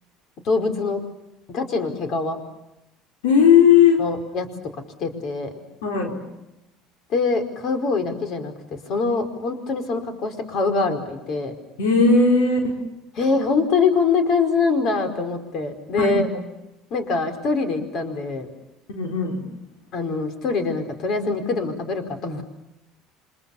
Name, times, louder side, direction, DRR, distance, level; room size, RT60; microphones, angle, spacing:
voice 1, 0.4-1.0 1.5-2.4 4.0-4.5 5.0-5.5 7.1-11.5 13.2-16.3 16.9-18.5 19.9-22.4, left 4 dB, 55° left, 7 dB, 4.8 m, -24 dB
voice 2, 3.2-4.0 5.8-6.2 11.8-12.8 16.0-16.2 18.9-19.4, left 6 dB, 90° left, 2 dB, 4.3 m, -17 dB
28.0 x 25.5 x 7.2 m, 0.93 s
supercardioid pair, 90°, 0 cm